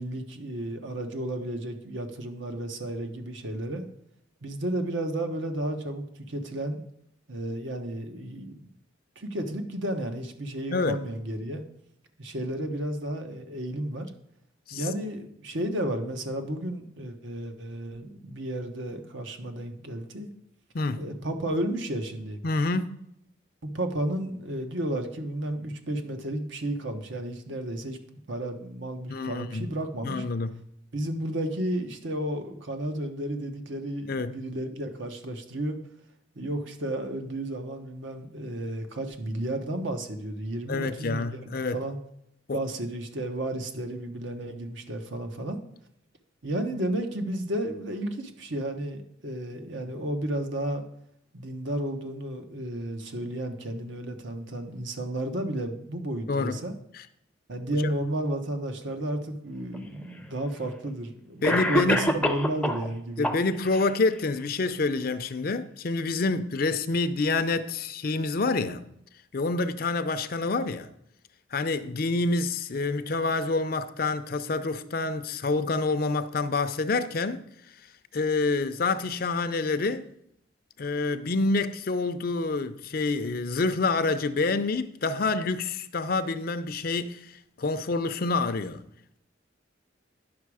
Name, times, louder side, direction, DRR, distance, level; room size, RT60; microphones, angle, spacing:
voice 1, 0.0-3.8 4.4-6.8 7.3-8.7 9.2-11.6 12.2-14.1 14.7-20.3 21.0-22.4 23.6-28.0 28.3-30.3 30.9-35.8 36.4-42.0 42.5-45.6 46.4-50.8 51.3-56.7 57.5-63.3, right 1 dB, 70° right, 1.1 m, -32 dB
voice 2, 10.7-11.0 14.7-14.9 20.7-21.0 22.4-23.0 29.1-29.7 30.0-30.5 34.1-34.4 40.7-41.8 42.5-42.6 56.3-56.6 57.0-57.1 61.4-62.2 63.2-68.8 69.3-70.9 71.5-77.5 78.1-80.1 80.8-87.3 87.6-88.9, left 3 dB, 50° left, 0.5 m, -27 dB
Cough, 59.7-59.8 60.8-60.9 61.4-62.9 63.2-63.9, left 1 dB, 5° left, 0.6 m, -26 dB
10.5 x 6.1 x 4.8 m
head